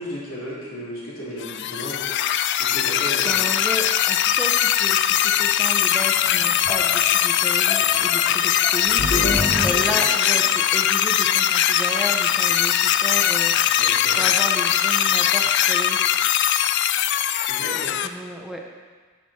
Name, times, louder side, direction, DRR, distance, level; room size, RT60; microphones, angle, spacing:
voice 1, 0.0-2.1 2.6-3.4 13.7-14.3 17.5-17.9, equal, 80° left, -6 dB, 3.1 m, -34 dB
sound 1, 1.4-18.1, left 10 dB, 60° left, 0.3 m, -20 dB
voice 2, 3.2-9.3 9.6-13.5 14.1-16.1 18.0-18.6, equal, ahead, 0 dB, 0.7 m, -33 dB
sound 2, 6.2-10.6, left 1 dB, 40° left, 1.3 m, -29 dB
10.5 x 6.5 x 4.2 m, 1.5 s
head